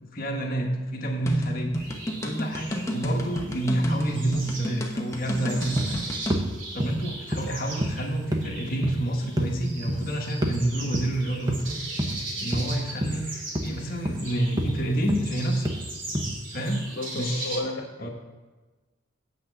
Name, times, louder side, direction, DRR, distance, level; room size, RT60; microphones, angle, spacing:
voice 1, 0.0-1.8 2.1-6.0 6.7-11.8 12.4-15.7 16.5-16.8 17.1-17.6 18.0-18.1, right 1 dB, 50° left, 1 dB, 1.3 m, -28 dB
sound 1, 1.3-6.4, equal, 15° left, 0.9 m, -31 dB
sound 2, 1.8-17.6, right 2 dB, 90° right, 2.5 m, -39 dB
sound 3, 5.3-5.4 5.8-6.0 6.3-6.5 6.8-7.0 7.3-7.5 7.8-8.0 8.3-8.5 8.8-9.0 9.4-9.5 9.9-10.1 10.4-10.6 10.9-11.1 11.5-11.6 12.0-12.2 12.5-12.7 13.0-13.2 13.6-13.8 14.1-14.2 14.6-14.8 15.1-15.3 15.7-15.8 16.2-16.3, equal, 20° right, 0.8 m, -27 dB
voice 2, 16.9-18.1, left 2 dB, 85° left, 2 dB, 1.1 m, -33 dB
8.1 x 6.2 x 5.9 m, 1.3 s
head